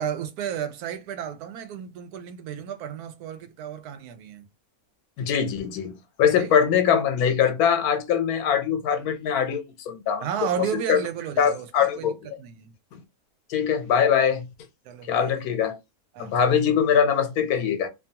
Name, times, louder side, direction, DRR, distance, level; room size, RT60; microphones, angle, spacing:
voice 1, 0.0-4.4 6.4-6.6 10.2-12.1 12.4-12.7 14.9-15.3 16.1-16.4, right 9 dB, 85° right, 1.1 m, -33 dB
voice 2, 5.2-5.9 6.2-10.2 10.7-11.0 11.4-12.2 13.5-14.5 15.1-15.8 16.2-17.9, left 7 dB, 80° left, 1.1 m, -22 dB
2.7 x 2.3 x 2.7 m
omnidirectional pair, 1.6 m